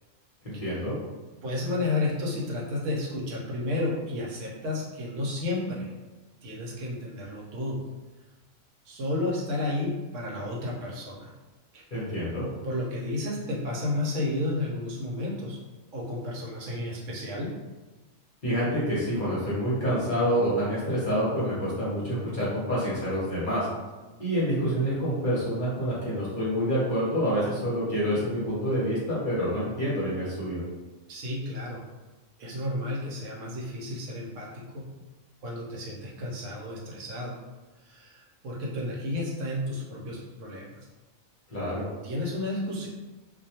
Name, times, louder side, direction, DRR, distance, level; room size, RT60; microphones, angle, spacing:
voice 1, 0.4-1.0 11.9-12.5 18.4-23.7 24.2-30.6 41.5-41.9, equal, 45° left, -8 dB, 0.8 m, -27 dB
voice 2, 1.4-5.9 6.4-7.8 8.8-11.3 11.7-12.0 12.6-15.6 15.9-17.5 31.1-31.9 32.4-34.8 35.4-37.4 37.8-40.8 42.0-42.9, left 2 dB, 75° right, -3 dB, 0.9 m, -32 dB
2.3 x 2.2 x 2.7 m, 1.2 s
omnidirectional pair, 1.4 m